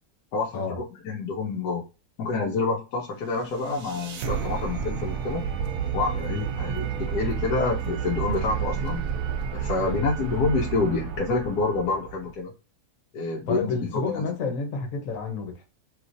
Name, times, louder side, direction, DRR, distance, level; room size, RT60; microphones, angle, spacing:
voice 1, 0.3-1.8 2.2-5.4 5.9-9.0 9.5-12.5 13.1-14.2, left 3 dB, 85° left, 1.2 m, -28 dB
sound 1, 3.2-12.3, right 7 dB, 70° right, 0.9 m, -31 dB
voice 2, 6.1-6.5 9.8-10.0 13.5-15.6, left 4 dB, 65° left, 1.2 m, -30 dB
3.1 x 2.8 x 2.6 m
omnidirectional pair, 1.6 m